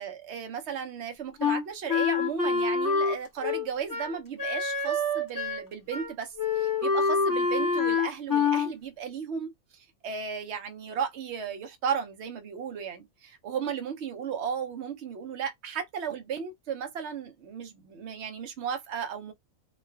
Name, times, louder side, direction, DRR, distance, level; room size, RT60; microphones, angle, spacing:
voice 1, 0.0-19.3, right 7 dB, 60° right, 0.9 m, -35 dB
Wind instrument woodwind instrument, 1.4-5.6 5.9-6.1 6.4-8.7, left 4 dB, 15° left, 0.9 m, -26 dB
3.1 x 2.3 x 2.3 m
omnidirectional pair, 1.4 m